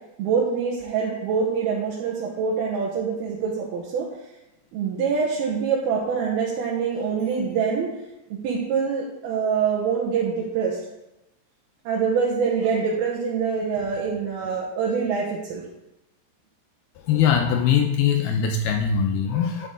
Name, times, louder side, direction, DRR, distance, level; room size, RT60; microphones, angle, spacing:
voice 1, 0.2-4.1 4.7-7.9 8.4-10.8 11.9-15.6, right 6 dB, 70° right, -3 dB, 2.9 m, -25 dB
voice 2, 17.1-19.7, left 7 dB, 75° left, 4 dB, 2.4 m, -21 dB
11.0 x 8.4 x 3.8 m, 0.93 s
omnidirectional pair, 4.9 m